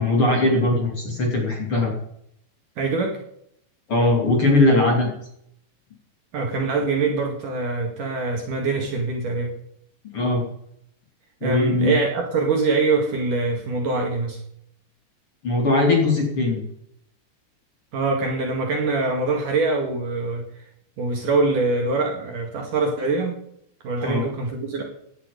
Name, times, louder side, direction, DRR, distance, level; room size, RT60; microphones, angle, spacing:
voice 1, 0.0-1.9 3.9-5.1 10.1-10.4 11.4-11.9 15.4-16.6 24.0-24.3, left 2 dB, 35° left, 0 dB, 3.1 m, -20 dB
voice 2, 2.8-3.2 6.3-9.5 11.4-14.4 17.9-20.4 21.0-23.4 23.8-24.8, right 3 dB, 55° right, 2 dB, 2.9 m, -24 dB
17.0 x 10.5 x 5.2 m, 0.72 s
omnidirectional pair, 5.2 m